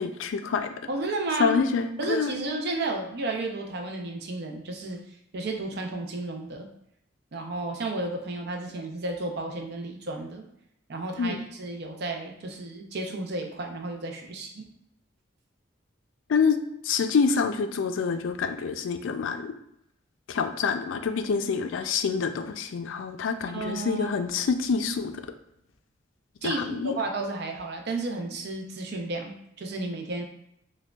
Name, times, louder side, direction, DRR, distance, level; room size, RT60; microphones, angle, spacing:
voice 1, 0.0-0.7 1.4-2.3 11.2-11.4 16.3-16.6 16.8-19.5 20.3-25.2 26.4-27.0, left 5 dB, 75° left, 8 dB, 0.4 m, -27 dB
voice 2, 0.9-1.6 2.0-5.0 5.3-6.7 7.3-10.4 10.9-14.7 23.5-24.2 26.4-30.2, right 2 dB, 55° right, 3 dB, 0.6 m, -32 dB
6.0 x 2.3 x 2.3 m, 0.80 s
head